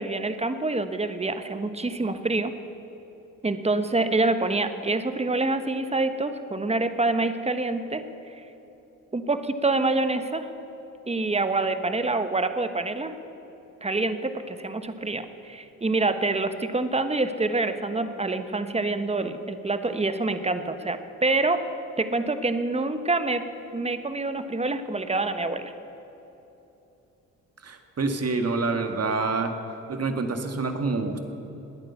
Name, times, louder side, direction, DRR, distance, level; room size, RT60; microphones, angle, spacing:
voice 1, 0.0-2.5 3.4-8.0 9.1-10.5 11.1-13.1 13.8-21.6 22.0-23.4 23.7-25.7, right 2 dB, 20° right, 9 dB, 1.2 m, -26 dB
voice 2, 27.6-29.5 29.9-31.2, right 3 dB, 45° right, 6 dB, 1.9 m, -27 dB
20.0 x 9.1 x 7.1 m, 3.0 s
supercardioid pair, 55°, 35 cm